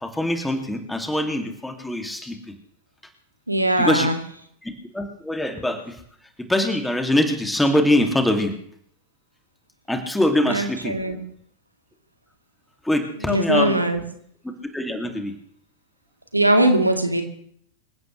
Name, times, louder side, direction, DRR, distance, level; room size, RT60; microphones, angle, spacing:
voice 1, 0.0-2.5 3.8-4.1 4.6-5.8 6.5-8.5 9.9-11.0 12.8-13.8 14.7-15.3, left 1 dB, 5° left, 4 dB, 2.5 m, -23 dB
voice 2, 3.5-4.2 10.4-11.2 13.2-14.0 16.3-17.2, right 1 dB, 85° right, 5 dB, 2.3 m, -20 dB
26.5 x 16.0 x 3.2 m, 0.65 s
figure-of-eight pair, 90°, 0 cm